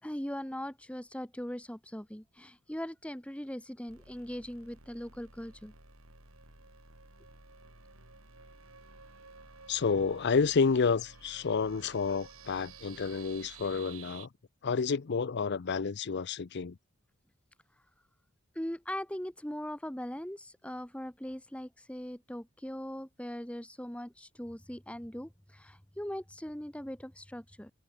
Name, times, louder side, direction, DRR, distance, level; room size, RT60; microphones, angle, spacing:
voice 1, 0.0-5.7 17.7-17.8 18.5-27.7, equal, 5° left, 1.5 m, -40 dB
sound 1, 3.9-14.3, right 4 dB, 90° right, 7.9 m, -53 dB
voice 2, 9.7-14.3 14.6-16.8, left 5 dB, 55° left, 0.6 m, -30 dB
head